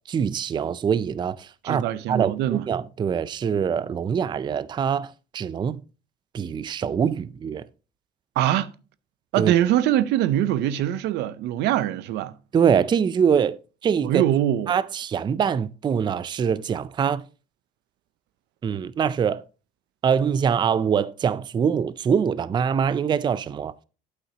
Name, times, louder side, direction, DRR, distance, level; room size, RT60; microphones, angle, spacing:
voice 1, 0.1-5.1 5.3-5.8 6.3-7.7 9.4-9.5 12.5-13.6 13.8-14.2 14.7-17.2 18.6-19.4 20.0-23.8, right 7 dB, 25° right, 0.4 m, -24 dB
voice 2, 1.6-2.7 8.4-8.7 9.3-12.3 14.0-14.7, right 12 dB, 85° right, 0.6 m, -23 dB
8.9 x 8.1 x 2.8 m
cardioid pair, 110°, 17 cm